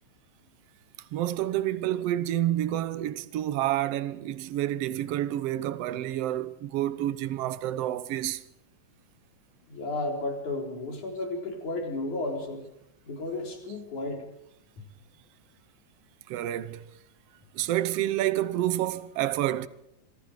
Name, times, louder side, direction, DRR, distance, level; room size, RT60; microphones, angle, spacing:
voice 1, 1.1-8.4 16.3-16.8 17.5-19.7, right 13 dB, 65° right, 1.8 m, -29 dB
voice 2, 9.7-12.6 13.1-14.2, left 2 dB, 85° left, 5.5 m, -33 dB
26.5 x 23.5 x 5.1 m
omnidirectional pair, 3.3 m